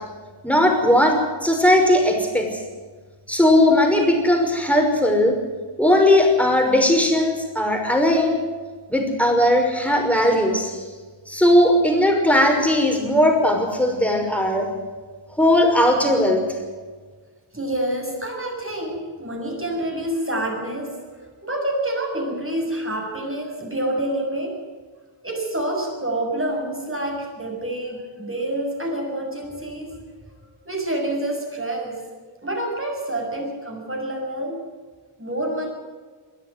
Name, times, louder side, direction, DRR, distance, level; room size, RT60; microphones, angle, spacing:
voice 1, 0.4-2.6 3.3-5.3 5.8-8.4 8.9-10.8 11.3-14.7 15.3-16.4, left 1 dB, 5° left, 2 dB, 5.7 m, -18 dB
voice 2, 17.5-24.6 25.2-30.0 30.3-32.1 32.4-34.6 35.2-35.7, right 1 dB, 25° right, 0 dB, 7.4 m, -27 dB
22.0 x 13.0 x 9.6 m, 1.5 s
wide cardioid pair, 90°, 49 cm